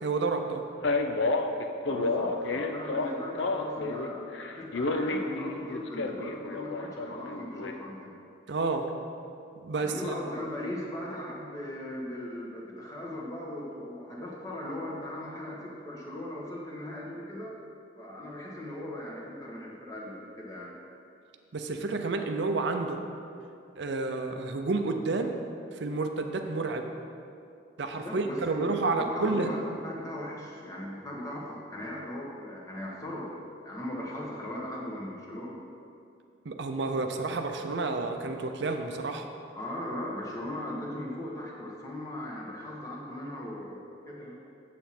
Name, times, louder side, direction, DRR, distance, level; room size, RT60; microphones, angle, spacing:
voice 1, 0.0-0.7 8.5-8.9 9.6-10.1 21.5-23.0 23.8-25.4 25.7-26.9 27.8-29.5 36.4-39.3, right 3 dB, 65° right, 5 dB, 0.5 m, -30 dB
Male speech man speaking, 0.8-4.1 4.3-7.7, left 3 dB, 70° left, 0.6 m, -30 dB
voice 2, 1.9-8.1 9.8-17.5 18.0-20.7 28.0-28.7 29.1-35.6 39.5-44.4, left 1 dB, 15° left, -4 dB, 1.3 m, -38 dB
8.0 x 7.4 x 4.2 m, 2.5 s
head